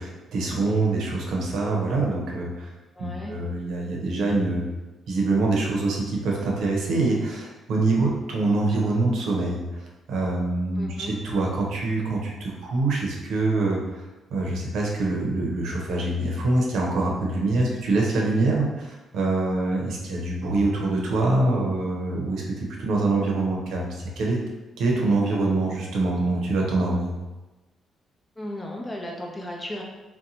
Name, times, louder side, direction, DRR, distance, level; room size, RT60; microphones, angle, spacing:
voice 1, 0.0-2.7 3.0-4.6 5.1-14.0 14.3-24.4 24.8-27.1, right 2 dB, 75° right, -2 dB, 0.7 m, -25 dB
voice 2, 2.9-3.3 10.8-11.2 28.4-29.8, left 1 dB, 15° left, -1 dB, 0.7 m, -35 dB
2.7 x 2.2 x 4.0 m, 1.1 s
cardioid pair, 90°, 0 cm